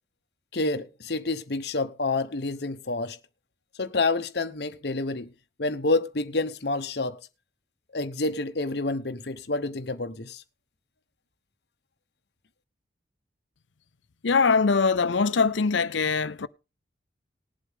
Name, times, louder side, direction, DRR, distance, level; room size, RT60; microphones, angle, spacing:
voice 1, 0.5-3.2 3.8-5.3 5.6-7.2 7.9-10.4, left 3 dB, 65° left, 1.0 m, -28 dB
voice 2, 14.2-16.5, left 4 dB, 85° left, 0.7 m, -22 dB
19.5 x 7.8 x 3.6 m
head